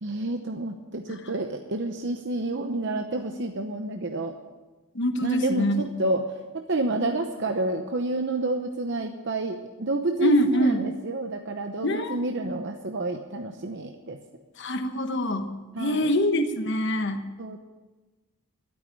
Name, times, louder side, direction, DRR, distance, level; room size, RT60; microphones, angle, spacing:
voice 1, 0.0-4.3 5.2-6.2 6.5-14.2 15.7-16.1 17.4-17.6, right 2 dB, 50° right, 4 dB, 0.8 m, -29 dB
voice 2, 4.9-5.9 10.2-10.8 11.8-12.2 14.6-15.5 15.8-17.2, equal, 55° left, 7 dB, 1.2 m, -24 dB
12.0 x 9.2 x 10.0 m, 1.2 s
head